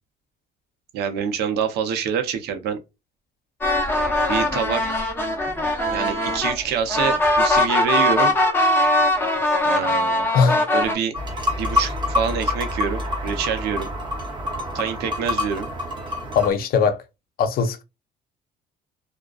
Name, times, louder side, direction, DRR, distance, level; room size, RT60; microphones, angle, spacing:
voice 1, 0.9-2.8 4.2-5.0 5.9-8.3 9.6-10.3 10.7-11.2 11.6-13.9 14.7-15.7, right 7 dB, 75° right, 0.6 m, -26 dB
sound 1, 3.6-11.0, left 1 dB, 15° left, 0.8 m, -21 dB
voice 2, 10.3-10.7 16.3-17.0 17.4-17.8, left 5 dB, 60° left, 0.6 m, -20 dB
sound 2, 11.1-16.5, left 2 dB, 25° right, 0.9 m, -26 dB
2.4 x 2.2 x 2.4 m
cardioid pair, 110°, 17 cm